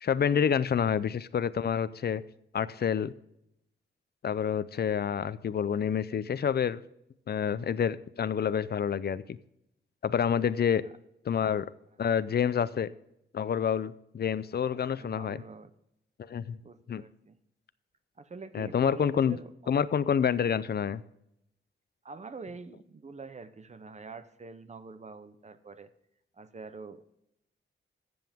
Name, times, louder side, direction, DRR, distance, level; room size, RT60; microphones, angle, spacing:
voice 1, 0.0-2.2 2.5-3.1 4.2-6.8 7.3-9.4 10.0-10.8 11.3-11.7 12.0-12.9 13.3-15.4 16.2-16.6 16.9-17.0 18.5-19.4 19.7-21.0, left 8 dB, 50° left, 16 dB, 0.5 m, -28 dB
voice 2, 7.5-7.8 10.5-10.9 14.7-15.7 16.6-17.4 18.2-19.7 22.0-25.9 26.3-27.1, right 4 dB, 35° right, 12 dB, 0.8 m, -46 dB
14.5 x 7.8 x 3.5 m, 0.79 s
wide cardioid pair, 135°, 21 cm